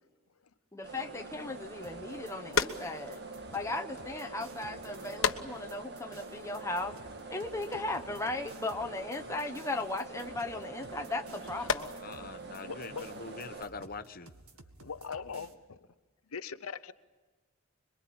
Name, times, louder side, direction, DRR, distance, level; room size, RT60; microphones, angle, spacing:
voice 1, 0.7-3.2 3.5-6.9 7.3-12.0, left 2 dB, 15° left, 4 dB, 1.1 m, -37 dB
sound 1, 0.8-13.6, right 3 dB, 50° right, 1.7 m, -45 dB
sound 2, 1.8-15.5, right 3 dB, 85° right, 2.1 m, -55 dB
sound 3, 2.0-13.4, left 5 dB, 65° left, 1.2 m, -39 dB
voice 2, 12.0-14.3, left 4 dB, 40° left, 10 dB, 1.1 m, -43 dB
voice 3, 12.6-13.2 14.8-15.8 16.3-16.9, left 5 dB, 85° left, 12 dB, 0.8 m, -41 dB
26.0 x 23.0 x 8.7 m, 1.3 s
head